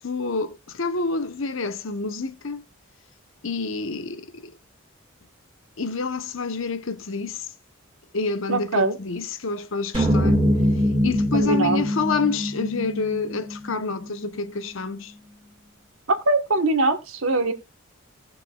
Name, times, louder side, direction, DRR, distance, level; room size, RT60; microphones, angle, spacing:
voice 1, 0.0-2.6 3.4-4.5 5.8-7.5 8.1-10.4 11.0-15.1, left 4 dB, 70° left, 1.0 m, -28 dB
voice 2, 8.5-9.0 11.3-11.8 16.1-17.5, right 2 dB, 80° right, 1.4 m, -22 dB
sound 1, 9.9-14.3, equal, 25° right, 1.9 m, -23 dB
18.0 x 6.4 x 2.4 m
head